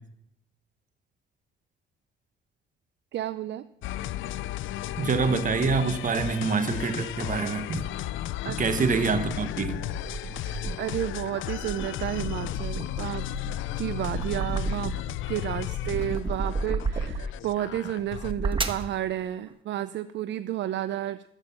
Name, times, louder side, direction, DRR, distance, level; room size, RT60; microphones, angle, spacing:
voice 1, 3.1-3.7 8.4-8.6 10.3-13.3 13.8-14.9 15.3-21.2, right 12 dB, 65° right, 0.5 m, -31 dB
sound 1, 3.8-18.4, left 14 dB, 80° left, 0.4 m, -34 dB
voice 2, 5.0-7.8 8.6-9.8, right 5 dB, 40° right, 1.3 m, -26 dB
sound 2, 9.1-11.0 11.5-15.2 15.6-17.5 18.1-18.9, right 3 dB, 25° right, 1.2 m, -33 dB
13.5 x 7.8 x 5.9 m
cardioid pair, 90°, 20 cm